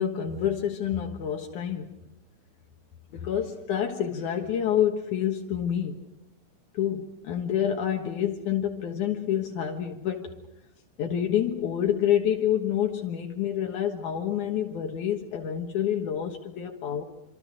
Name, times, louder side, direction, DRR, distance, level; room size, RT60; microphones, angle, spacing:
voice 1, 0.0-1.9 3.1-6.1 6.7-10.4 11.0-17.0, left 9 dB, 75° left, 3 dB, 2.8 m, -28 dB
27.5 x 27.0 x 6.4 m, 0.86 s
omnidirectional pair, 3.6 m